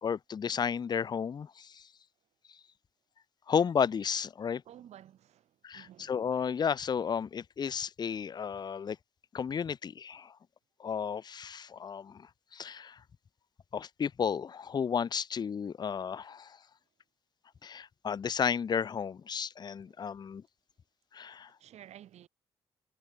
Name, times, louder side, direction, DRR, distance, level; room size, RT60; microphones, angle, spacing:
voice 1, 0.0-1.9 2.5-2.6 3.5-4.6 5.6-9.0 9.3-10.4 10.8-13.0 13.7-16.6 17.6-20.4 21.1-21.5, left 7 dB, 35° left, 0.4 m, -33 dB
voice 2, 4.7-6.2 19.9-20.0 21.6-22.3, right 11 dB, 70° right, 3.6 m, -53 dB
hypercardioid pair, 40°, 12 cm